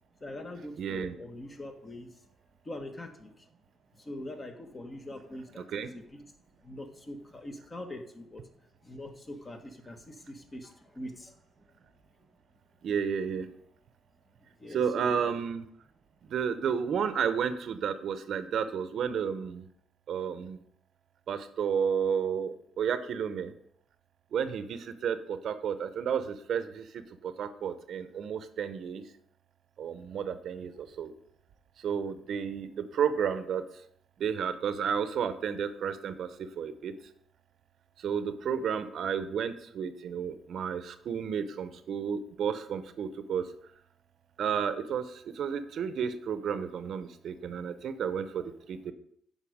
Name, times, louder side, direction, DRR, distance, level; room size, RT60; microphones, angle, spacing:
voice 1, 0.2-2.1 2.6-3.5 3.9-6.2 6.6-8.4 8.8-11.4 14.4-15.3, left 1 dB, 30° left, 5 dB, 1.4 m, -43 dB
voice 2, 0.8-1.1 5.7-5.9 12.8-13.5 14.7-15.7 16.3-19.7 20.1-20.6 21.3-23.5 24.3-29.0 29.8-31.1 31.8-33.6 34.2-36.3 36.6-36.9 38.0-43.4 44.4-48.9, right 7 dB, 65° right, 11 dB, 0.7 m, -32 dB
8.6 x 5.4 x 5.0 m, 0.67 s
cardioid pair, 90°, 0 cm